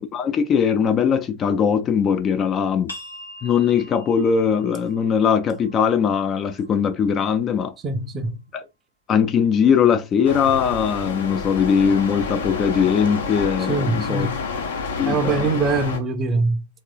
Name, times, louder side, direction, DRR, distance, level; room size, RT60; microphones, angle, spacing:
voice 1, 0.0-2.9 3.4-7.7 8.5-8.6 9.1-14.3 15.0-15.5, left 7 dB, 30° left, 0.4 m, -20 dB
sound 1, 2.9-8.3, left 1 dB, 80° left, 1.1 m, -44 dB
voice 2, 7.8-8.4 13.7-14.4 15.1-16.7, right 3 dB, 25° right, 0.5 m, -23 dB
sound 2, 10.2-16.0, left 4 dB, 65° left, 0.8 m, -29 dB
3.7 x 3.0 x 2.3 m
figure-of-eight pair, 90°, 0 cm